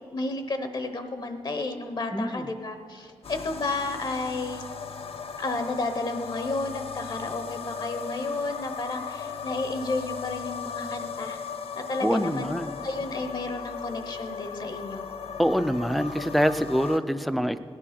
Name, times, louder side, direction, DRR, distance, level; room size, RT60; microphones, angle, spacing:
voice 1, 0.1-4.6 5.4-11.4 11.8-12.5 12.8-15.0, left 2 dB, 50° left, 7 dB, 0.8 m, -32 dB
voice 2, 2.1-2.5 12.0-12.8 15.4-17.6, equal, ahead, 11 dB, 0.4 m, -25 dB
sound 1, 3.2-17.0, left 6 dB, 80° left, 0.7 m, -37 dB
17.5 x 9.9 x 5.8 m, 2.4 s
wide cardioid pair, 145°, 10 cm